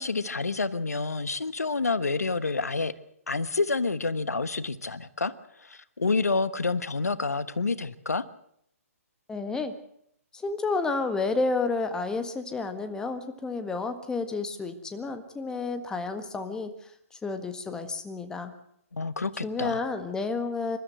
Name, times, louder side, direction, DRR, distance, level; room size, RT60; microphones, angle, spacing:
voice 1, 0.0-2.9 3.3-5.3 5.6-8.2 18.9-19.8, left 3 dB, 85° left, 14 dB, 1.2 m, -28 dB
voice 2, 9.3-9.7 10.3-16.7 17.2-18.5 19.4-20.8, left 3 dB, 10° left, 8 dB, 1.6 m, -30 dB
27.0 x 13.0 x 7.8 m, 0.71 s
hypercardioid pair, 140°, 8 cm